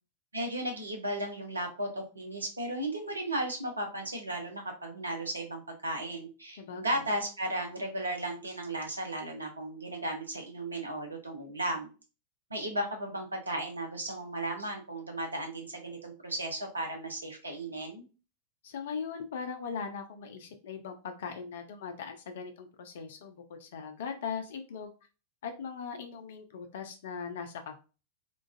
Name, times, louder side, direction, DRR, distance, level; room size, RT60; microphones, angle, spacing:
voice 1, 0.3-11.9 12.5-18.0, right 1 dB, 80° right, 3 dB, 0.8 m, -35 dB
voice 2, 6.6-7.0 18.6-24.9 25.4-27.8, left 6 dB, 60° left, 6 dB, 0.5 m, -39 dB
3.7 x 2.4 x 2.5 m, 0.33 s
figure-of-eight pair, 90°, 0 cm